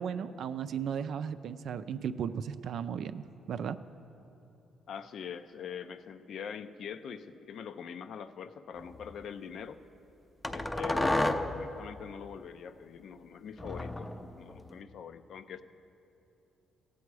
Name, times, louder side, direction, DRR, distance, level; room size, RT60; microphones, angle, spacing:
voice 1, 0.0-3.8, right 7 dB, 65° right, 12 dB, 0.4 m, -35 dB
voice 2, 4.9-9.8 10.5-14.1 14.4-15.6, left 7 dB, 65° left, 11 dB, 0.5 m, -43 dB
sound 1, 8.8-9.1 10.4-11.7 13.6-14.8, left 1 dB, 15° left, 0.5 m, -32 dB
15.5 x 8.4 x 4.7 m, 2.9 s
cardioid pair, 90°, 0 cm